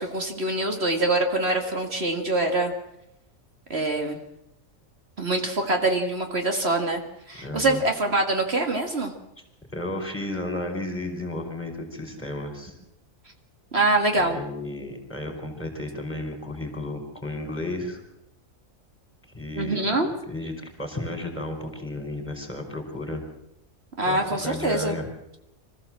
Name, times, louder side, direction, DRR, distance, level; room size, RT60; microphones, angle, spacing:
voice 1, 0.0-2.7 3.7-4.2 5.2-7.0 7.3-9.1 13.7-14.4 19.6-20.1 24.0-25.0, right 2 dB, 50° right, 4 dB, 2.2 m, -24 dB
voice 2, 7.4-7.8 9.7-12.8 14.1-18.0 19.3-23.2 24.0-25.1, left 1 dB, 10° left, 4 dB, 5.0 m, -33 dB
25.5 x 15.0 x 7.6 m, 0.83 s
omnidirectional pair, 1.4 m